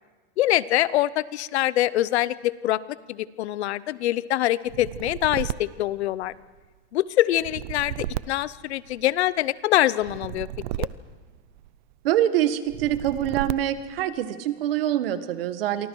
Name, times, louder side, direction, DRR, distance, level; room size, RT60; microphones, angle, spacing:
voice 1, 0.4-2.8 3.1-6.3 6.9-10.5 10.8-10.9, left 14 dB, 90° left, 18 dB, 0.8 m, -24 dB
sound 1, 4.7-6.6 7.3-9.3 10.0-11.9 12.7-14.0, right 14 dB, 45° right, 0.6 m, -34 dB
voice 2, 12.0-15.9, right 11 dB, 60° right, 11 dB, 1.6 m, -25 dB
28.5 x 24.0 x 4.7 m, 1.3 s
supercardioid pair, 175°, 32 cm